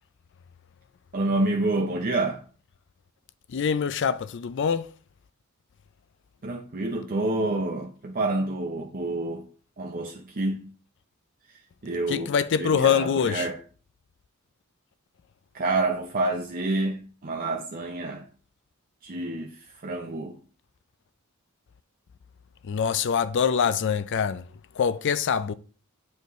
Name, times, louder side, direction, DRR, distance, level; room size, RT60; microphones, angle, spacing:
voice 1, 1.1-2.4 6.4-9.5 9.8-10.7 11.8-13.6 15.5-18.3 19.0-20.4, right 2 dB, 45° right, 0.6 m, -28 dB
voice 2, 3.5-4.9 12.1-13.5 22.6-24.5 24.7-25.5, left 7 dB, 60° left, 0.4 m, -24 dB
8.0 x 4.6 x 3.1 m
head